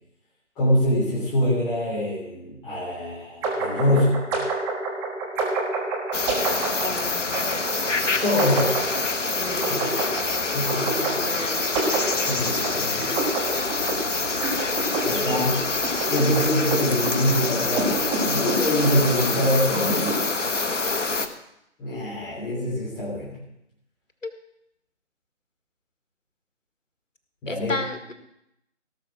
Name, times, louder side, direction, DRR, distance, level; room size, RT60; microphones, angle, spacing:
voice 1, 0.6-4.2 8.0-8.7 9.7-9.8 10.5-11.4 12.2-13.1 15.0-15.5 16.1-20.2 21.8-23.4 27.4-27.7, left 1 dB, 10° left, -8 dB, 3.2 m, -24 dB
sound 1, 3.4-20.1, right 3 dB, 10° right, 1.4 m, -29 dB
sound 2, 6.1-21.3, left 3 dB, 70° left, 1.4 m, -26 dB
voice 2, 6.8-7.1 9.4-10.4 10.7-11.7 15.1-15.5 24.2-24.3 27.5-28.1, left 2 dB, 85° left, 7 dB, 1.9 m, -33 dB
17.5 x 6.6 x 6.0 m, 0.81 s
figure-of-eight pair, 150°, 38 cm